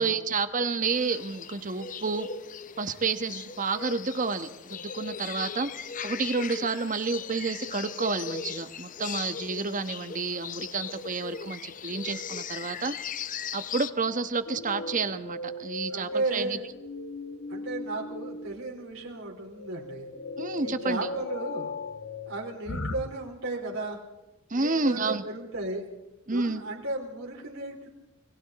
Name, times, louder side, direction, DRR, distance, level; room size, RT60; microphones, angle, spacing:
voice 1, 0.0-2.3 2.8-5.7 6.0-13.0 13.5-16.6 20.4-21.1 24.5-25.2 26.3-26.6, right 4 dB, 40° right, 10 dB, 1.2 m, -30 dB
sound 1, 0.8-13.9, left 7 dB, 40° left, 0.7 m, -39 dB
sound 2, 14.5-22.9, left 2 dB, 65° left, 1.6 m, -38 dB
voice 2, 15.9-16.6 17.5-20.1 20.6-21.7 22.3-24.0 24.5-25.9 26.3-27.9, right 2 dB, 85° right, -1 dB, 4.3 m, -34 dB
29.0 x 21.5 x 4.2 m, 0.96 s
head